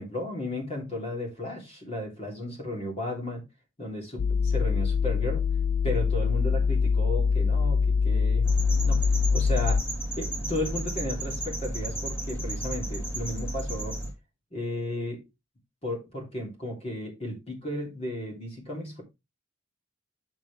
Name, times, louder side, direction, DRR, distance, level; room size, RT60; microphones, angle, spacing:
voice 1, 0.0-3.4 3.8-5.5 5.8-8.5 8.8-9.0 9.3-9.8 10.2-14.0 14.5-15.2 15.8-19.0, left 1 dB, 30° left, 3.4 m, -34 dB
sound 1, 4.2-9.8, left 5 dB, 50° left, 0.3 m, -24 dB
sound 2, 8.4-14.1, right 1 dB, 10° left, 2.8 m, -33 dB
7.5 x 7.0 x 3.5 m
head